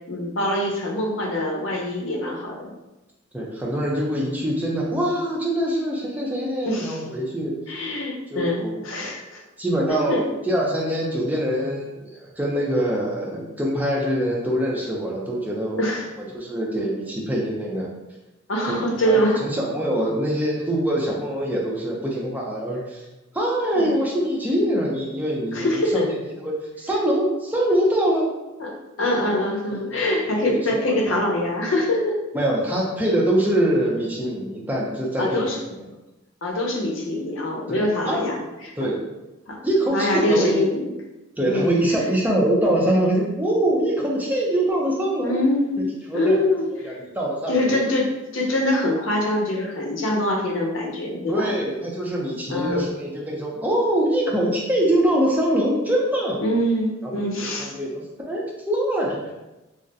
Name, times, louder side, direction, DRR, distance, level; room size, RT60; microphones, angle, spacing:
voice 1, 0.1-2.7 6.6-7.0 7.7-9.4 10.1-10.2 15.8-16.1 18.5-19.4 23.7-23.9 25.5-26.1 28.6-28.7 29.0-32.2 35.2-35.6 36.4-38.4 39.5-39.6 39.9-40.9 41.4-42.0 45.2-45.8 46.1-46.9 47.5-51.5 52.5-52.9 56.4-57.7, left 1 dB, 80° left, -1 dB, 0.7 m, -24 dB
voice 2, 3.3-7.5 8.3-8.8 9.6-15.8 16.3-17.9 18.7-23.0 23.3-26.0 26.4-28.3 30.4-31.2 32.3-35.8 37.7-38.3 38.8-39.0 39.6-40.5 41.4-45.4 46.1-46.4 46.8-47.8 51.3-56.4 57.0-59.2, right 1 dB, 10° right, -3 dB, 0.5 m, -24 dB
2.5 x 2.2 x 3.9 m, 1.0 s
head